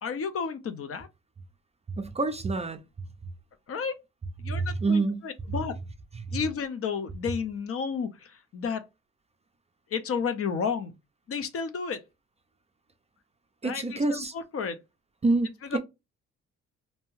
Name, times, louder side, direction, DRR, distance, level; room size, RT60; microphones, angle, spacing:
voice 1, 0.0-1.1 3.7-4.0 4.4-5.7 6.3-8.8 9.9-10.9 11.3-12.0 13.6-14.8 15.7-15.8, left 6 dB, 50° left, 0.6 m, -32 dB
voice 2, 2.0-2.8 4.4-5.3 13.6-14.3 15.2-15.8, right 3 dB, 20° right, 0.4 m, -27 dB
2.7 x 2.2 x 3.0 m
cardioid pair, 90°, 30 cm